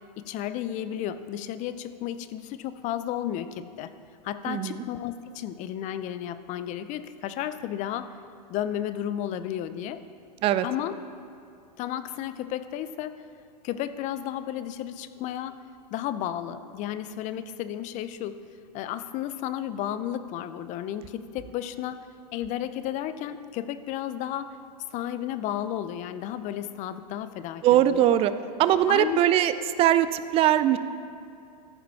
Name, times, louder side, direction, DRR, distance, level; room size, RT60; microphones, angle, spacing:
voice 1, 0.2-3.9 4.2-8.1 8.5-10.0 10.6-10.9 11.8-13.1 13.6-15.6 15.9-18.3 18.7-24.6 24.9-28.2 28.9-29.2, left 11 dB, 35° left, 12 dB, 0.5 m, -33 dB
voice 2, 4.5-4.8 10.4-10.7 27.6-28.3 28.6-29.5 29.8-30.8, right 12 dB, 25° right, 13 dB, 0.4 m, -21 dB
14.0 x 5.0 x 4.6 m, 2.5 s
hypercardioid pair, 115°, 21 cm